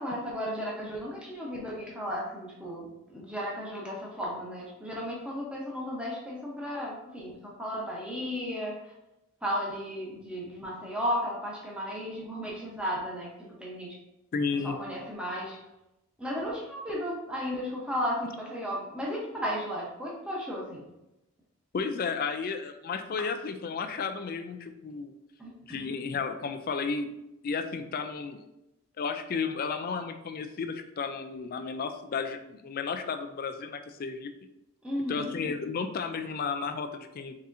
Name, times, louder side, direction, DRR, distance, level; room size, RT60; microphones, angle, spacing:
voice 1, 0.0-8.9 9.4-14.0 14.6-15.6 16.2-20.8 25.4-25.9 34.8-35.3, equal, 5° right, -4 dB, 0.9 m, -34 dB
voice 2, 14.3-14.8 21.7-25.1 25.6-27.1 27.4-28.4 29.0-34.3 35.1-37.3, left 5 dB, 40° left, 8 dB, 0.3 m, -33 dB
4.1 x 3.6 x 2.6 m, 0.91 s
head